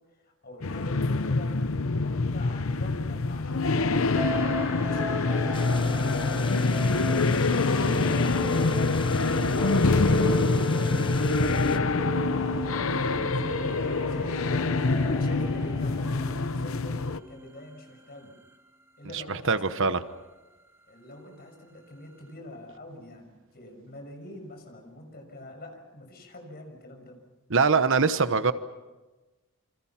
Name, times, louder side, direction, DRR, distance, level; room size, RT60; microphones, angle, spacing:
voice 1, 0.1-8.7 9.1-18.4 19.0-20.0 20.9-27.2, left 1 dB, 45° left, 4 dB, 6.2 m, -45 dB
sound 1, 0.6-17.2, left 3 dB, 65° left, 0.8 m, -25 dB
sound 2, 4.1-18.3, right 1 dB, 10° right, 0.9 m, -37 dB
sound 3, 5.5-11.8, left 4 dB, 25° left, 1.0 m, -40 dB
voice 2, 19.3-20.0 27.5-28.5, right 4 dB, 60° right, 12 dB, 1.1 m, -23 dB
28.5 x 26.5 x 5.8 m, 1.2 s
head